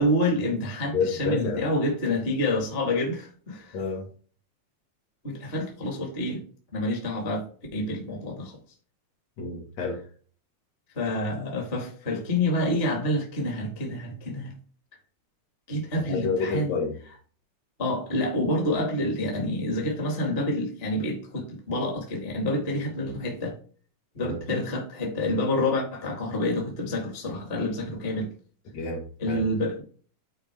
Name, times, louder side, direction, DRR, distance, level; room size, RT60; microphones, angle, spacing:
voice 1, 0.0-3.8 5.2-6.4 6.7-7.4 7.7-8.6 10.9-14.5 15.7-16.7 17.8-23.5 24.1-28.3 29.2-29.8, left 1 dB, 25° left, 1.4 m, -28 dB
voice 2, 0.9-1.6 3.7-4.1 9.4-10.0 16.1-17.0 24.2-24.6 28.7-29.4, left 4 dB, 60° left, 2.6 m, -29 dB
9.4 x 4.2 x 3.4 m
omnidirectional pair, 3.5 m